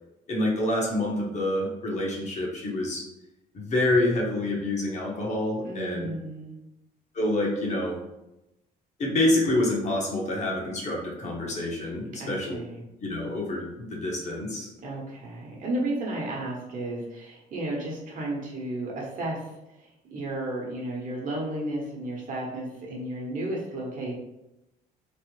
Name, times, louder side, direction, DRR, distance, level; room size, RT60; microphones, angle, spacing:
voice 1, 0.3-3.1 3.5-6.1 7.1-8.0 9.0-12.6 13.0-14.7, left 1 dB, 45° left, -2 dB, 0.9 m, -27 dB
voice 2, 5.6-6.5 12.1-12.9 14.8-19.5 19.8-24.1, right 1 dB, 50° right, -2 dB, 1.0 m, -33 dB
3.1 x 2.1 x 3.1 m, 0.92 s
cardioid pair, 110°, 17 cm